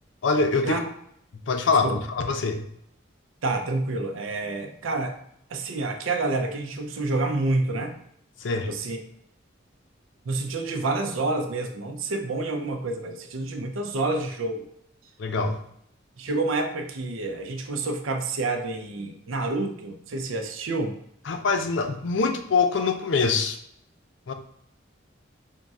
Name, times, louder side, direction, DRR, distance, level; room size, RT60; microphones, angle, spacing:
voice 1, 0.2-0.8 1.3-2.7 8.4-8.7 15.2-15.6 21.3-23.6 24.3-24.4, left 4 dB, 70° left, 6 dB, 0.5 m, -24 dB
voice 2, 3.4-5.1 5.5-7.9 8.7-9.0 10.3-14.7 16.2-20.9, right 2 dB, 90° right, 4 dB, 0.5 m, -28 dB
3.6 x 2.4 x 4.1 m, 0.70 s
head